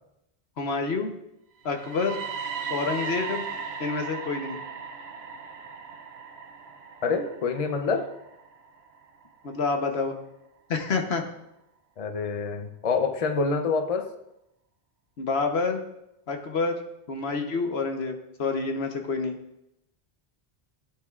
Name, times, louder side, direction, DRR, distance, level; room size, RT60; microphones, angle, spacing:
voice 1, 0.6-1.1 1.6-2.2 2.7-3.4 3.8-4.6 9.4-10.2 10.7-11.2 15.2-15.8 16.3-16.8 17.1-19.4, left 4 dB, 85° left, 4 dB, 1.3 m, -28 dB
sound 1, 1.6-9.6, right 5 dB, 80° right, 1.0 m, -37 dB
voice 2, 7.0-8.1 12.0-14.1, left 4 dB, 40° left, 6 dB, 0.7 m, -26 dB
15.0 x 8.8 x 2.4 m, 0.85 s
omnidirectional pair, 1.0 m